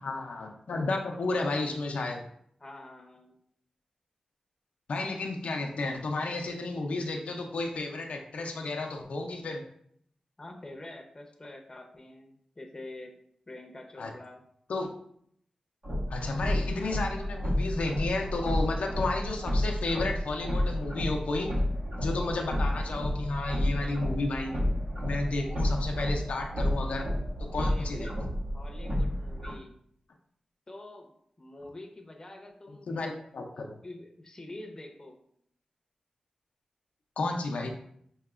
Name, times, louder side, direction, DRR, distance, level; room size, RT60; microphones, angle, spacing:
voice 1, 0.0-2.2 4.9-9.6 14.0-14.1 14.7-14.9 16.1-21.5 22.0-24.6 25.0-27.1 27.4-28.1 32.9-33.8 37.2-37.7, left 2 dB, 85° left, 2 dB, 0.5 m, -32 dB
voice 2, 2.6-3.4 10.4-13.1 13.5-14.4 27.6-28.1 28.5-29.7 30.7-32.9 33.8-35.2, left 2 dB, 30° left, 1 dB, 0.7 m, -46 dB
sound 1, 15.8-29.5, left 1 dB, 80° right, 1.7 m, -31 dB
5.6 x 2.8 x 2.4 m, 0.68 s
wide cardioid pair, 90°, 2 cm